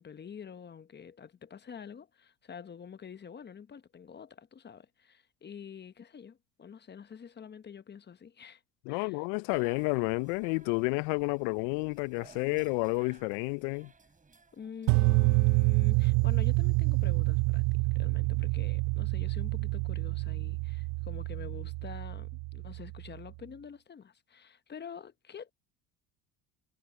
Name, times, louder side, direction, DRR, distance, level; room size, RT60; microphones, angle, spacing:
voice 1, 0.0-8.6 8.9-9.2 14.5-25.5, left 7 dB, 25° left, 0.9 m, -47 dB
voice 2, 8.9-13.9, left 30 dB, 80° left, 0.5 m, -30 dB
sound 1, 9.5-15.3, right 4 dB, 20° right, 4.9 m, -57 dB
sound 2, 14.9-23.0, right 27 dB, 65° right, 0.6 m, -28 dB
supercardioid pair, 95°, 39 cm